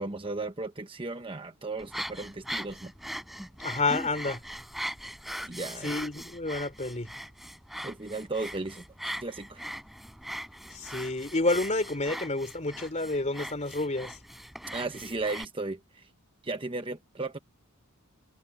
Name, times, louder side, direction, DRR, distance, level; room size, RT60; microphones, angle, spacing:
voice 1, 0.0-2.9 5.4-5.9 7.8-9.7 14.7-16.1 16.4-17.4, right 3 dB, 25° right, 1.1 m, -35 dB
sound 1, 1.8-15.4, equal, ahead, 6.8 m, -40 dB
voice 2, 3.6-4.4 5.8-7.1 10.7-14.2, left 2 dB, 30° left, 3.3 m, -29 dB
head